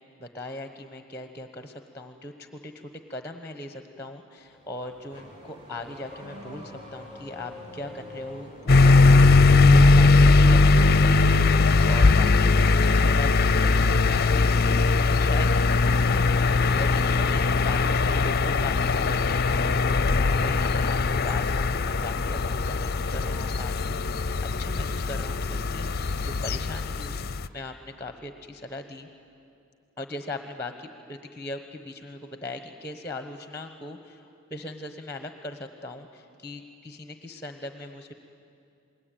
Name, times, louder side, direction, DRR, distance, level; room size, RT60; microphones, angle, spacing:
voice 1, 0.2-12.5 12.8-15.5 15.8-24.3 24.6-27.2 27.5-29.1 30.0-38.1, left 2 dB, 10° left, 7 dB, 1.0 m, -40 dB
Car / Accelerating revving vroom, 4.4-9.4, left 1 dB, 25° right, 4.2 m, -44 dB
sound 1, 8.7-27.5, left 3 dB, 45° left, 0.6 m, -20 dB
28.5 x 20.5 x 9.2 m, 2.6 s
head